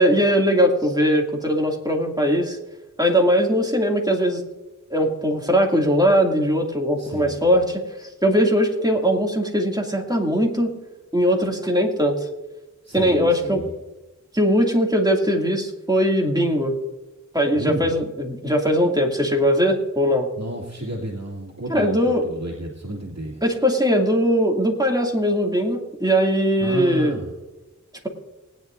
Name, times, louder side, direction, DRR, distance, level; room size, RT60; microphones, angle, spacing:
voice 1, 0.0-2.6 3.0-4.4 4.9-10.7 11.1-12.2 12.9-13.6 14.3-16.8 17.3-20.3 21.7-22.2 23.4-27.2, equal, 10° right, 1 dB, 2.4 m, -20 dB
voice 2, 7.0-7.5 12.8-13.7 17.6-18.0 20.4-23.4 26.6-27.3, right 1 dB, 55° right, -3 dB, 2.4 m, -32 dB
20.0 x 10.5 x 2.6 m, 1.1 s
wide cardioid pair, 45°, 31 cm